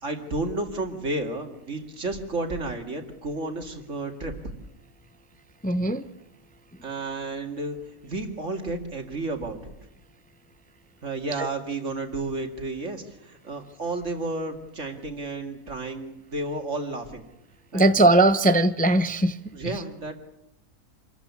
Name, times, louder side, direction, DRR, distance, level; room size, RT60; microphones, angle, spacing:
voice 1, 0.0-4.4 6.8-9.7 11.0-17.2 17.7-17.9 19.5-20.1, right 2 dB, 50° right, 4 dB, 2.5 m, -32 dB
voice 2, 5.6-6.0 17.7-19.4 19.6-19.7, right 2 dB, 10° left, 11 dB, 0.4 m, -19 dB
26.5 x 14.5 x 8.4 m, 0.90 s
omnidirectional pair, 1.6 m